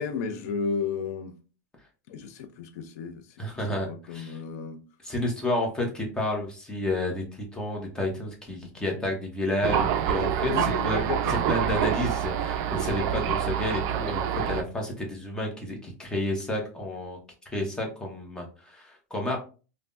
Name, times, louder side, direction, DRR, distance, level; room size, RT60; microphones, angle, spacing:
voice 1, 0.0-1.3 2.1-3.4 3.9-4.8 10.5-11.9, left 5 dB, 65° left, 7 dB, 0.5 m, -33 dB
voice 2, 3.4-4.4 5.0-17.2 17.5-19.4, left 1 dB, 10° left, 0 dB, 0.8 m, -31 dB
Thunder, 9.6-14.6, right 9 dB, 45° right, 0.3 m, -26 dB
3.3 x 2.1 x 2.5 m, 0.35 s
supercardioid pair, 135°, 9 cm